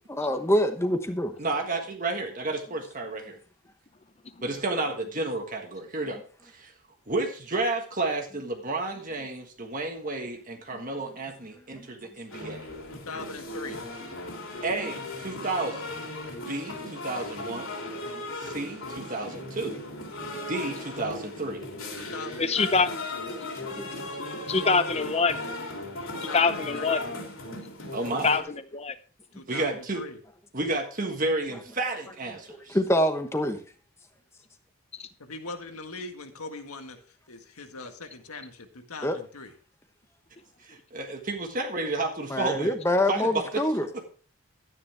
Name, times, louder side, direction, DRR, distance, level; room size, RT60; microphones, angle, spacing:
voice 1, 0.1-1.3 10.8-10.9 11.8-11.9 23.6-24.1 32.7-33.6 39.0-39.2 42.3-43.9, left 1 dB, 10° left, 1.0 m, -25 dB
voice 2, 1.4-3.4 4.4-6.7 7.1-12.7 14.6-15.9 16.5-17.7 18.3-19.9 20.3-21.6 27.9-28.3 29.5-30.0 30.5-32.8 40.6-42.7 43.1-43.6 43.9-44.0, right 2 dB, 35° right, 1.5 m, -31 dB
sound 1, 12.3-28.4, left 1 dB, 65° left, 3.1 m, -37 dB
voice 3, 12.9-13.8 22.0-22.7 26.1-26.9 29.3-30.2 35.2-39.5, left 3 dB, 80° left, 1.7 m, -41 dB
voice 4, 22.4-22.9 24.5-25.4 26.3-27.0 28.2-28.9 35.0-35.1, left 4 dB, 30° left, 0.7 m, -24 dB
12.5 x 9.8 x 3.4 m
head